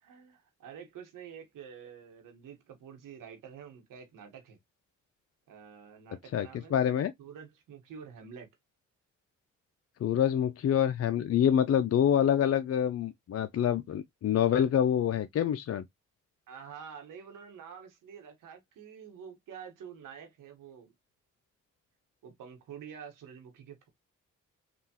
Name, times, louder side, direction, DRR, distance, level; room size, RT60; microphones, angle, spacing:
voice 1, 0.0-4.6 5.5-6.7 7.2-8.5 16.5-20.9 22.2-23.9, right 7 dB, 85° right, 1.1 m, -48 dB
voice 2, 6.3-7.1 10.0-15.8, left 9 dB, 50° left, 0.4 m, -26 dB
3.5 x 2.4 x 2.8 m
supercardioid pair, 50°, 31 cm